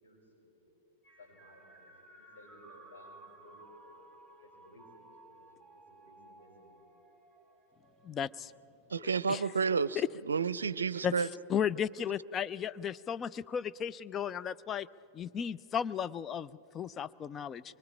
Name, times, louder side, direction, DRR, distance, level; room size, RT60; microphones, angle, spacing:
voice 1, 0.0-0.7 1.2-1.9 2.2-4.0 4.4-5.4 5.7-6.8, left 1 dB, 65° left, -2 dB, 6.8 m, -58 dB
sound 1, 1.0-8.6, right 2 dB, ahead, 2.3 m, -58 dB
voice 2, 8.0-8.5 9.3-9.4 10.0-10.1 11.0-11.1 11.5-14.9 15.1-17.6, left 8 dB, 25° left, 14 dB, 0.4 m, -34 dB
voice 3, 8.9-11.3, right 5 dB, 75° right, 18 dB, 0.5 m, -31 dB
24.0 x 22.0 x 5.0 m, 2.8 s
figure-of-eight pair, 95°, 0 cm